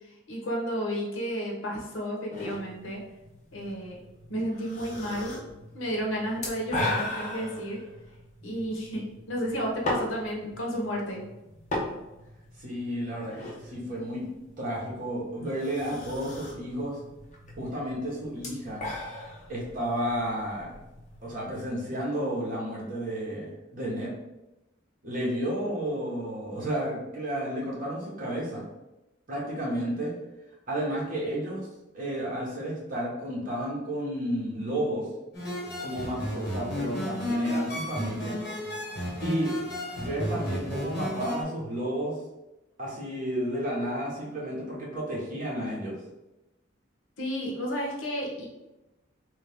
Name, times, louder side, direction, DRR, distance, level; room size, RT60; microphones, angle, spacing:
voice 1, 0.3-3.0 3.5-4.0 4.3-5.4 5.7-7.8 8.4-11.2 47.2-48.5, equal, 80° left, -1 dB, 0.9 m, -32 dB
sound 1, 2.3-22.0, left 2 dB, 35° left, 0.7 m, -39 dB
voice 2, 12.6-14.3 14.6-17.0 17.6-18.9 19.5-20.8 21.2-24.1 25.0-28.6 29.3-30.1 30.7-31.7 31.9-35.1 35.8-38.4 39.2-39.5 40.0-42.1 42.8-46.0, equal, 45° right, -4 dB, 1.1 m, -32 dB
sound 2, 35.3-41.4, equal, 55° left, 1.4 m, -32 dB
3.2 x 2.7 x 3.4 m, 0.98 s
head